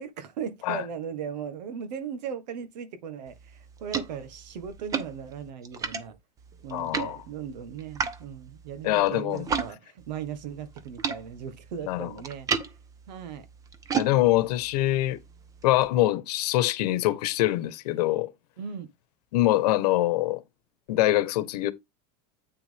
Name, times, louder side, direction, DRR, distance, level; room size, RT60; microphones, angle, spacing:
voice 1, 0.0-6.1 6.6-12.5 13.1-13.5 18.6-18.9, right 7 dB, 85° right, 1.6 m, -37 dB
sound 1, 3.3-9.7 10.0-15.9, right 6 dB, 15° right, 0.7 m, -35 dB
voice 2, 6.7-7.2 8.8-9.5 11.9-12.1 13.9-15.2 15.6-18.3 19.3-20.4 20.9-21.7, left 16 dB, 70° left, 1.2 m, -24 dB
8.8 x 5.9 x 3.5 m
supercardioid pair, 170°, 21 cm